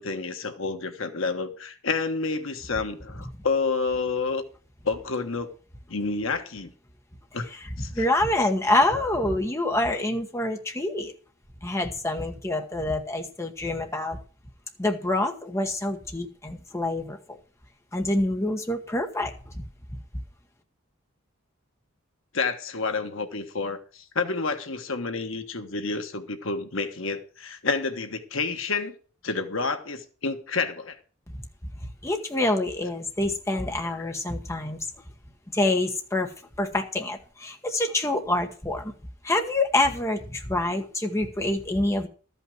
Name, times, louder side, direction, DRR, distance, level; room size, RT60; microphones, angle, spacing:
voice 1, 0.0-4.4 4.8-5.5 5.9-6.7 7.3-7.5 7.8-8.0 22.3-28.9 29.2-31.0 34.0-34.1, left 4 dB, 70° left, 1.3 m, -29 dB
voice 2, 7.5-11.1 11.6-14.2 14.8-17.4 17.9-19.6 32.0-34.8 35.5-36.3 36.6-38.9 39.2-42.1, left 1 dB, 15° left, 1.2 m, -26 dB
13.5 x 5.6 x 7.6 m
head